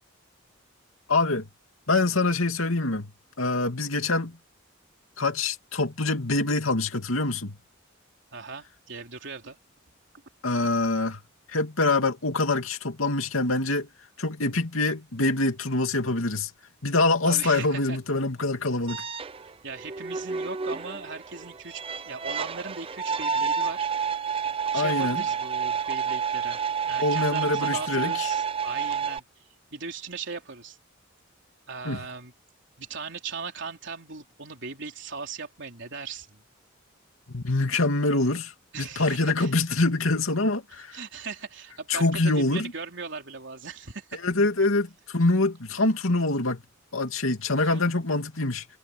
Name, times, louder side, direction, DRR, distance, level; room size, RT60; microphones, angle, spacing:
voice 1, 1.1-1.5 1.9-3.1 3.4-4.4 5.2-7.6 10.4-11.2 11.5-13.9 14.2-16.5 16.8-19.0 24.7-25.2 27.0-28.3 31.8-32.0 37.3-41.0 41.9-42.7 44.2-46.6 46.9-48.7, left 2 dB, 90° left, 2.6 m, -25 dB
voice 2, 8.3-9.6 17.2-18.0 19.6-23.9 24.3-24.5 24.7-29.2 29.7-30.8 31.7-32.3 32.8-36.4 38.7-39.5 40.9-44.2 47.6-47.8, right 4 dB, 60° right, 3.9 m, -38 dB
sound 1, 18.9-29.2, right 6 dB, 25° right, 0.6 m, -29 dB
head